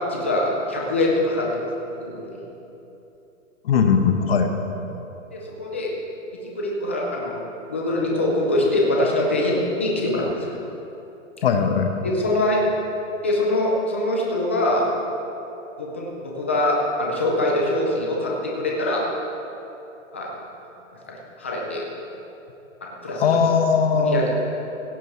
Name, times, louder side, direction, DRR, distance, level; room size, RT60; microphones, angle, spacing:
voice 1, 0.1-1.5 2.0-2.4 5.3-5.9 6.3-7.4 7.7-10.3 12.0-12.6 13.2-14.9 15.8-19.1 20.1-20.3 21.1-21.9 22.8-23.4 23.9-24.3, left 1 dB, 10° left, -2 dB, 0.4 m, -23 dB
voice 2, 3.6-4.5 11.4-11.9 23.2-24.2, left 5 dB, 45° left, 6 dB, 1.1 m, -19 dB
16.0 x 7.7 x 5.8 m, 3.0 s
hypercardioid pair, 165°, 39 cm